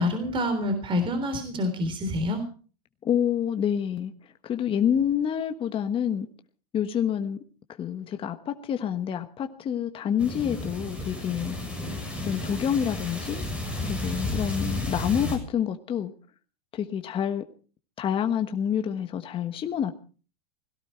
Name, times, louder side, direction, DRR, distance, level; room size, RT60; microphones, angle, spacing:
voice 1, 0.0-2.4, left 1 dB, 25° right, 9 dB, 3.6 m, -27 dB
voice 2, 3.0-4.1 4.4-6.3 6.7-7.4 7.8-11.5 12.2-13.5 13.8-16.1 16.7-17.4 18.0-19.9, left 9 dB, 25° left, 7 dB, 1.3 m, -27 dB
sound 1, 10.2-15.4, left 2 dB, 5° right, 6.7 m, -32 dB
18.0 x 17.0 x 4.5 m, 0.39 s
hypercardioid pair, 120°, 20 cm